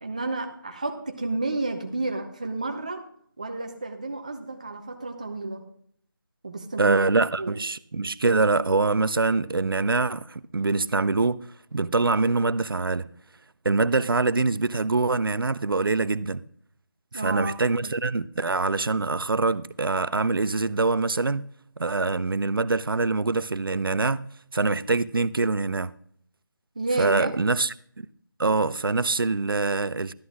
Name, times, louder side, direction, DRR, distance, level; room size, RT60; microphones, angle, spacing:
voice 1, 0.0-3.0 3.4-5.6 6.4-7.0 7.4-7.6 17.1-17.5 26.7-27.3, right 2 dB, 20° right, 0.8 m, -31 dB
voice 2, 6.8-11.4 11.7-13.0 13.6-16.4 17.2-21.5 21.8-24.2 24.5-25.9 27.0-28.1 28.4-30.1, right 3 dB, 80° right, 0.6 m, -24 dB
13.0 x 11.5 x 3.6 m
figure-of-eight pair, 175°, 12 cm